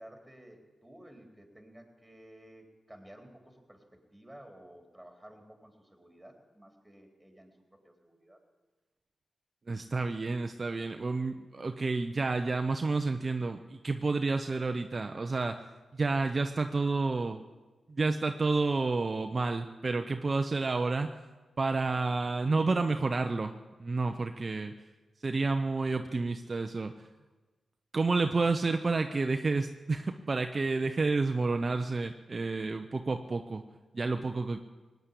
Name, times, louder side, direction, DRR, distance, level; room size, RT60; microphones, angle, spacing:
voice 1, 0.0-7.6 7.8-8.4, right 1 dB, 5° right, 3 dB, 3.9 m, -53 dB
voice 2, 9.7-17.4 17.9-21.2 21.6-24.7 25.2-27.1 27.9-33.6 33.9-34.6, right 3 dB, 45° right, 6 dB, 0.8 m, -30 dB
18.0 x 9.4 x 8.4 m, 1.2 s
supercardioid pair, 40°, 0 cm